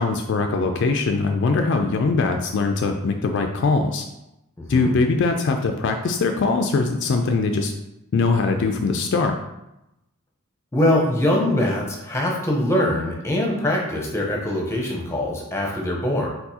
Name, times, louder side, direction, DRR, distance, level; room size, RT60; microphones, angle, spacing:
voice 1, 0.0-4.0 4.7-7.7 8.1-9.3, left 3 dB, 55° left, 5 dB, 0.3 m, -21 dB
voice 2, 4.6-4.9 10.7-16.3, left 1 dB, 10° left, 0 dB, 0.8 m, -23 dB
4.5 x 4.0 x 2.8 m, 0.89 s
head